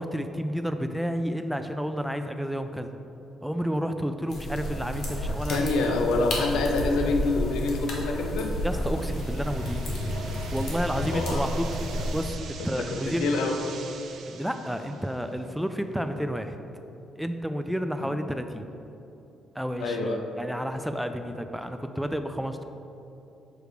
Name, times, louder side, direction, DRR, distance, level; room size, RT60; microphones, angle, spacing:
voice 1, 0.0-2.9 3.4-6.0 8.6-9.9 10.5-13.3 14.3-16.6 17.2-18.6 19.6-22.6, equal, ahead, 7 dB, 0.3 m, -31 dB
sound 1, 4.3-12.2, equal, 60° left, 1.2 m, -31 dB
voice 2, 5.5-8.5 11.1-11.4 12.9-13.6 18.0-18.1 19.8-20.2, left 3 dB, 85° left, 3 dB, 0.6 m, -26 dB
sound 2, 8.4-15.4, right 6 dB, 70° right, 0.5 m, -45 dB
6.3 x 3.3 x 4.9 m, 2.8 s
cardioid pair, 90°, 0 cm